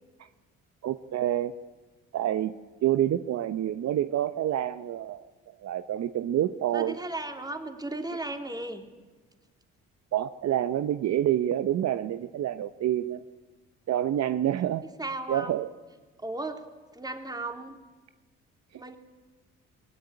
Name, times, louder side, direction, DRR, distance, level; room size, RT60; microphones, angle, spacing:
voice 1, 0.8-1.5 2.1-2.5 2.8-5.2 5.6-7.0 10.1-13.2 13.9-14.9 15.3-15.7, right 11 dB, 60° right, 12 dB, 0.8 m, -27 dB
voice 2, 6.7-8.9 15.0-15.5 16.2-16.6 16.9-17.8 18.7-19.0, right 2 dB, 15° right, 5 dB, 3.1 m, -35 dB
21.0 x 17.5 x 10.0 m, 1.3 s
supercardioid pair, 65°, 30 cm